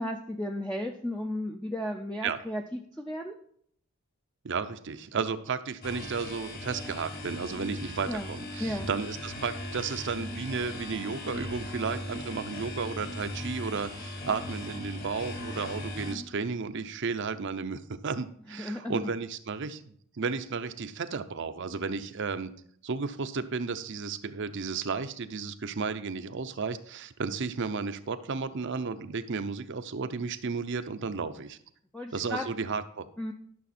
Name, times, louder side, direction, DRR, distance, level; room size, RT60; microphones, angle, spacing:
voice 1, 0.0-3.4 7.6-7.7 8.1-8.3 8.6-8.9 16.0-16.3 18.6-19.1 31.9-32.5 33.2-33.3, left 1 dB, 5° left, 2 dB, 0.5 m, -34 dB
voice 2, 4.4-22.5 22.8-31.6 32.1-33.1, right 5 dB, 55° right, 10 dB, 0.6 m, -33 dB
sound 1, 5.8-16.2, left 1 dB, 40° left, 1.7 m, -38 dB
12.0 x 6.3 x 4.2 m, 0.62 s
head